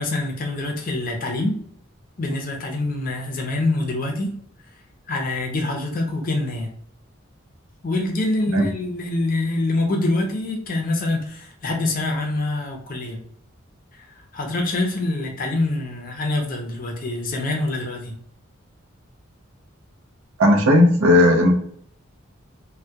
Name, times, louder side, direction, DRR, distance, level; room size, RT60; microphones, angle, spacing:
voice 1, 0.0-1.6 2.2-4.3 5.1-6.7 7.8-13.2 13.9-14.1 14.3-18.2, left 2 dB, 40° left, 1 dB, 0.5 m, -25 dB
voice 2, 20.4-21.5, left 1 dB, 85° right, 3 dB, 0.5 m, -15 dB
2.2 x 2.1 x 2.7 m, 0.63 s
head